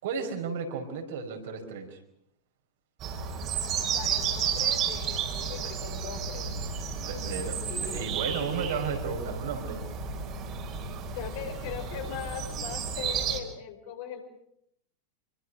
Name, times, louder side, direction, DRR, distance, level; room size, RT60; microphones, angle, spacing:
voice 1, 0.0-2.0 7.0-9.8, right 6 dB, 55° right, 4 dB, 5.1 m, -34 dB
sound 1, 3.0-13.4, right 6 dB, 35° right, 4.4 m, -32 dB
voice 2, 3.8-6.6 7.2-8.1 11.1-14.2, left 8 dB, 50° left, 4 dB, 5.2 m, -40 dB
27.5 x 24.0 x 6.2 m, 0.75 s
figure-of-eight pair, 90°, 0 cm